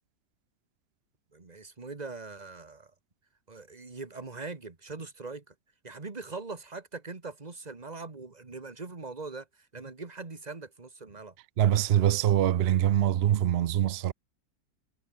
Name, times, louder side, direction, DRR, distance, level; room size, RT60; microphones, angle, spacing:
voice 1, 1.3-2.9 3.5-5.5 5.8-11.3, right 3 dB, 25° right, 1.9 m, -41 dB
voice 2, 11.6-14.1, right 11 dB, 70° right, 0.6 m, -24 dB
omnidirectional pair, 1.8 m